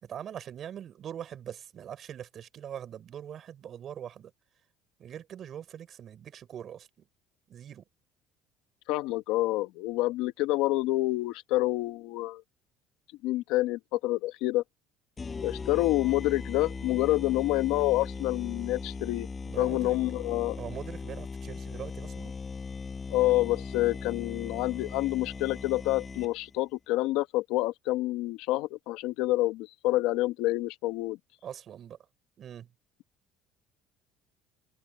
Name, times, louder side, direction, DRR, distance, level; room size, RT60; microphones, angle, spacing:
voice 1, 0.0-4.3 5.0-7.1 7.5-7.8 19.4-20.0 20.5-22.4 31.4-32.0 32.4-32.7, right 9 dB, 35° right, 6.2 m, -42 dB
voice 2, 8.9-12.4 13.2-14.6 15.4-19.3 19.6-20.6 23.1-31.2, left 17 dB, 75° left, 1.5 m, -28 dB
sound 1, 15.2-26.5, left 4 dB, 20° left, 5.8 m, -39 dB
cardioid pair, 160°, 0 cm